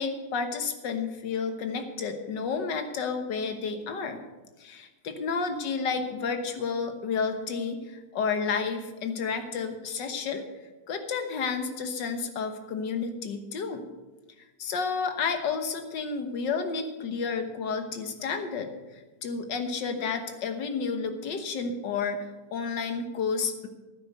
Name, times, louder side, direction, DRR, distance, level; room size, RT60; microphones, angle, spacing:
voice 1, 0.0-4.2 4.6-10.5 10.9-13.9 14.6-23.7, left 5 dB, 70° left, 7 dB, 1.8 m, -31 dB
11.5 x 9.9 x 6.7 m, 1.2 s
omnidirectional pair, 2.0 m